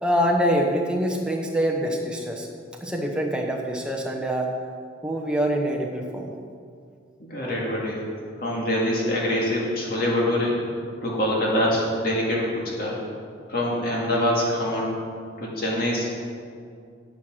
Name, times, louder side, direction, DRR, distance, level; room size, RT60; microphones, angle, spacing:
voice 1, 0.0-2.5 2.8-4.5 5.0-6.3, equal, 5° right, 0 dB, 1.0 m, -25 dB
voice 2, 7.2-8.0 8.4-10.5 11.0-13.0 13.5-14.9 15.4-16.1, left 1 dB, 50° left, -4 dB, 2.2 m, -24 dB
9.3 x 7.8 x 6.2 m, 2.3 s
head